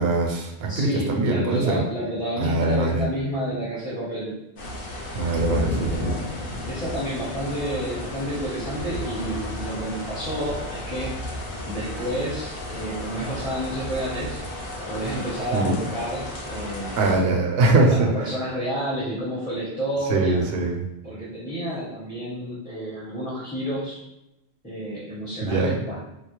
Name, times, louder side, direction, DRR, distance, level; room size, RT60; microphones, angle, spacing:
voice 1, 0.0-1.8 2.4-3.1 5.2-6.1 15.5-15.8 17.0-18.1 20.1-20.8 25.4-25.8, right 2 dB, 75° right, 1 dB, 0.8 m, -22 dB
voice 2, 0.7-4.4 5.3-6.0 6.7-11.1 11.6-14.4 14.9-17.3 17.6-20.5 21.0-24.0 24.6-26.0, right 1 dB, 10° left, -8 dB, 0.5 m, -30 dB
sound 1, 4.6-17.2, left 1 dB, 65° left, 0.8 m, -33 dB
2.3 x 2.0 x 2.9 m, 0.88 s
omnidirectional pair, 1.1 m